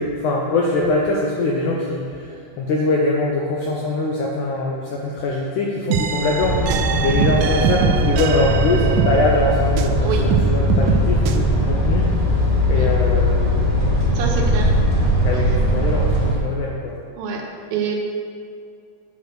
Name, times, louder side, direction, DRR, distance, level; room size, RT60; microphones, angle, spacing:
voice 1, 0.0-6.6 7.0-13.5 15.2-17.0, left 2 dB, 80° left, -2 dB, 1.7 m, -22 dB
sound 1, 5.9-10.0 10.3-11.4, right 8 dB, 90° right, 1.9 m, -23 dB
sound 2, 6.4-16.3, equal, 25° right, 1.0 m, -19 dB
voice 2, 14.1-14.7 15.3-15.4 17.2-17.4 17.7-18.0, right 6 dB, 75° right, 1 dB, 2.6 m, -26 dB
8.7 x 6.1 x 6.0 m, 2.3 s
omnidirectional pair, 4.5 m